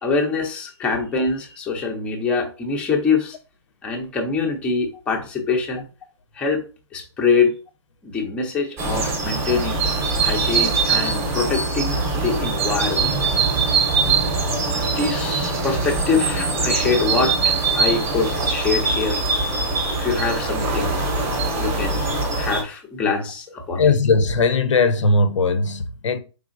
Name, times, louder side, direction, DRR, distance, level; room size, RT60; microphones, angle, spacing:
voice 1, 0.0-3.4 3.8-5.9 6.4-6.6 6.9-7.6 8.0-9.8 10.2-13.2 14.7-19.2 20.0-21.0 21.6-22.0 22.4-23.9, left 4 dB, 5° left, 0.5 m, -24 dB
sound 1, 8.8-22.6, right 3 dB, 15° right, 0.8 m, -22 dB
voice 2, 23.8-26.2, left 3 dB, 80° left, 0.7 m, -18 dB
4.8 x 3.6 x 2.5 m
hypercardioid pair, 155°, 16 cm